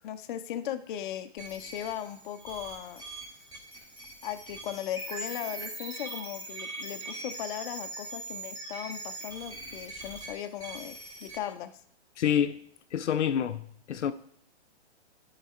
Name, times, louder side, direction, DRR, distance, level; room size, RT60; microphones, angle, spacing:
voice 1, 0.0-3.0 4.2-11.7, left 11 dB, 45° left, 0.6 m, -38 dB
sound 1, 1.4-11.4, right 2 dB, 10° right, 1.7 m, -41 dB
voice 2, 12.2-12.6 12.9-14.1, left 9 dB, 85° left, 0.7 m, -27 dB
12.0 x 4.0 x 4.3 m
hypercardioid pair, 140°, 35 cm